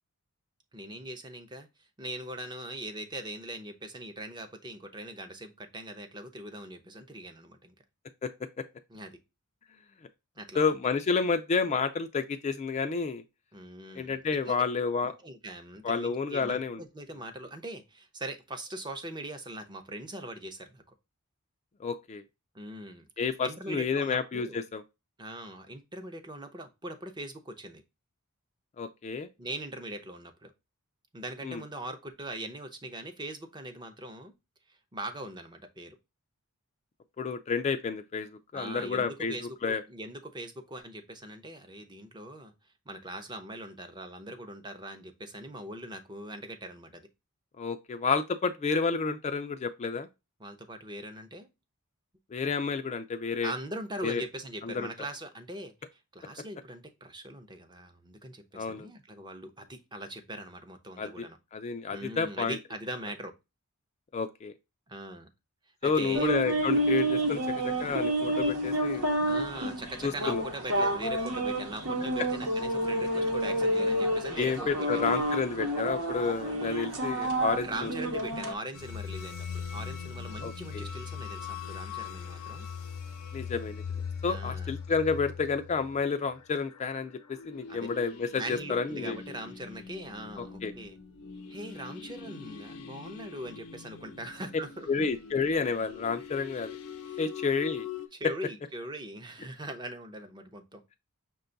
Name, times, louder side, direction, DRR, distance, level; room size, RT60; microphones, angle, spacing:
voice 1, 0.7-7.7 8.9-9.2 10.4-10.6 13.5-14.6 15.2-20.8 22.5-23.1 23.4-24.6 25.2-27.8 29.4-30.5 31.1-34.3 34.7-36.0 38.5-42.5 42.9-47.0 50.4-51.5 53.4-55.7 56.1-61.4 61.9-63.3 64.9-65.3 65.8-66.3 69.2-75.3 77.6-82.7 84.2-84.7 87.7-87.9 88.3-91.0 91.5-94.9 97.1-97.2 98.1-100.8, right 1 dB, 20° right, 0.6 m, -41 dB
voice 2, 10.6-13.2 14.0-15.1 15.8-16.8 21.8-22.2 23.2-24.8 28.8-29.3 31.4-31.6 37.2-39.4 39.6-39.8 47.6-50.1 52.3-53.5 54.0-54.2 54.6-54.9 58.5-58.9 61.0-61.3 61.5-62.6 64.1-64.5 65.8-69.1 70.0-70.4 74.4-77.9 80.4-80.9 83.3-83.8 84.2-89.2 90.4-90.7 94.9-96.7 97.2-97.9, left 5 dB, 30° left, 0.3 m, -30 dB
sound 1, 66.1-78.5, right 1 dB, 70° right, 0.9 m, -29 dB
sound 2, 78.7-98.1, left 6 dB, 90° left, 0.6 m, -41 dB
6.0 x 2.3 x 3.8 m
head